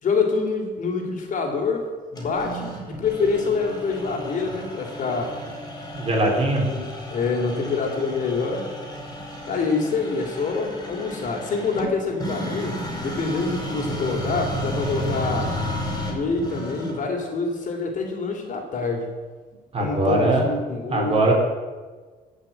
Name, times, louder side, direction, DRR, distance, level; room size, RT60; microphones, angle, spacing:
voice 1, 0.0-1.8 2.1-5.4 6.5-8.7 9.5-15.5 16.0-19.1 19.8-21.3, left 4 dB, 50° left, 3 dB, 3.0 m, -26 dB
sound 1, 2.2-17.2, equal, 20° left, 4.7 m, -33 dB
voice 2, 5.9-6.7 19.7-20.5 20.9-21.3, right 2 dB, 35° right, 0 dB, 4.0 m, -21 dB
16.5 x 6.3 x 8.9 m, 1.4 s
cardioid pair, 110°, 17 cm